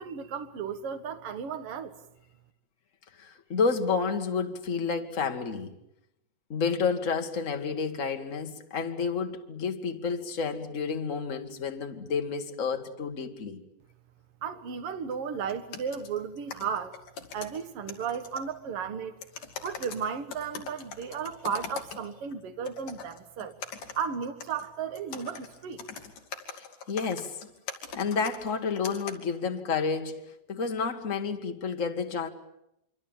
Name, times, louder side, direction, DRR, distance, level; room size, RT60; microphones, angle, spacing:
voice 1, 0.0-2.0 14.4-17.0 17.3-19.1 19.6-23.6 24.0-25.8, right 6 dB, 50° right, 2.0 m, -34 dB
voice 2, 3.2-5.7 6.5-13.6 26.6-27.4 27.9-30.2 30.5-32.3, left 5 dB, 35° left, 1.3 m, -30 dB
sound 1, 15.1-15.2 15.5-18.5 19.2-22.3 22.6-29.1, left 6 dB, 60° left, 3.8 m, -42 dB
26.0 x 24.5 x 9.1 m
omnidirectional pair, 4.2 m